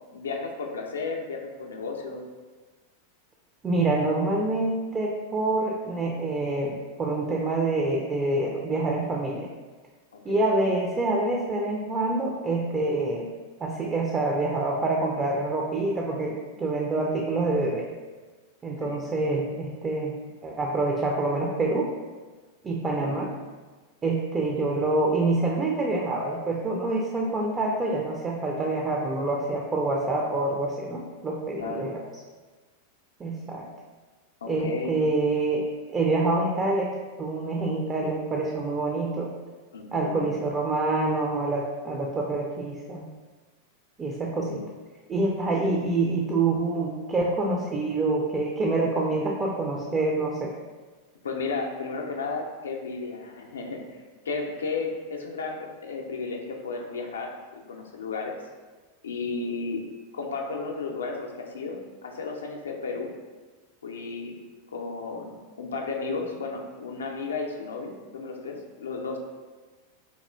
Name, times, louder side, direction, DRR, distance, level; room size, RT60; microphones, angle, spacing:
voice 1, 0.1-2.2 10.1-10.4 18.8-19.0 23.0-23.2 28.5-28.6 31.6-31.9 34.4-34.9 39.7-40.3 44.4-44.6 51.2-53.8 54.2-57.3 57.7-58.3 59.0-59.8 60.1-63.1 63.8-64.3 64.7-69.2, left 4 dB, 70° left, 2 dB, 0.4 m, -33 dB
voice 2, 3.6-9.5 10.2-13.3 13.6-17.8 18.6-20.2 20.4-21.9 22.6-23.3 24.0-32.0 33.2-33.7 34.5-39.3 39.9-43.0 44.0-44.6 45.1-50.5, right 2 dB, 20° right, -1 dB, 0.3 m, -26 dB
4.1 x 2.3 x 2.2 m, 1.3 s
figure-of-eight pair, 90°, 0 cm